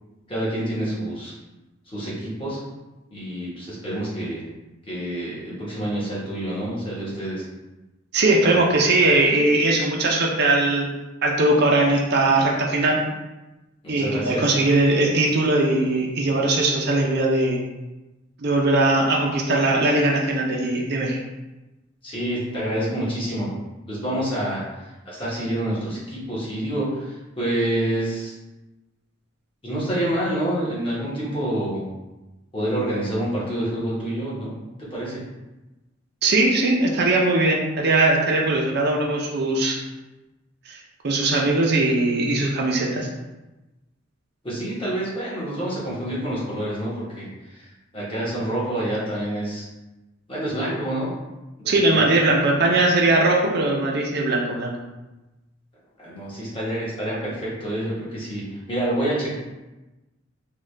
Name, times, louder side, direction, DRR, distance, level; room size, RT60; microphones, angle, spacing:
voice 1, 0.3-1.3 1.9-2.6 3.1-4.4 4.9-7.5 8.4-8.6 13.8-14.5 22.0-23.5 23.9-28.3 29.6-31.9 32.5-34.5 34.8-35.2 44.4-47.7 47.9-49.7 50.3-51.1 51.6-52.1 56.0-59.4, right 1 dB, 25° left, -8 dB, 1.2 m, -27 dB
voice 2, 8.1-10.9 11.2-13.0 13.9-17.6 18.4-21.2 36.2-39.8 40.7-43.1 51.7-54.7, right 2 dB, 55° right, -1 dB, 0.5 m, -20 dB
3.6 x 2.3 x 3.2 m, 1.1 s
head